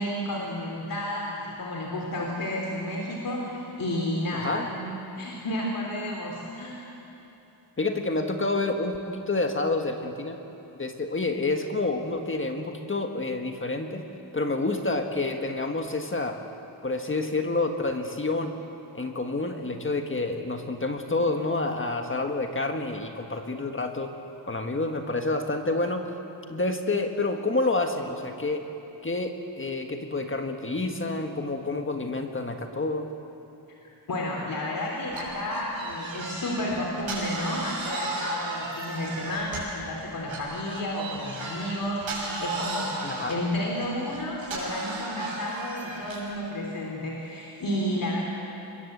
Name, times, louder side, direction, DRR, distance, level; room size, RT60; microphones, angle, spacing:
voice 1, 0.0-6.8 34.1-48.2, left 1 dB, 45° left, -2 dB, 3.2 m, -31 dB
voice 2, 4.3-4.7 7.8-10.4 10.8-14.0 14.3-16.4 16.8-18.5 18.9-24.1 24.5-26.2 26.5-28.6 29.0-33.1 43.0-43.4, left 2 dB, 25° left, 4 dB, 1.5 m, -28 dB
sound 1, 35.1-39.8 40.3-46.3, right 3 dB, 80° right, 6.9 m, -36 dB
26.5 x 21.5 x 8.0 m, 2.9 s
wide cardioid pair, 155°, 46 cm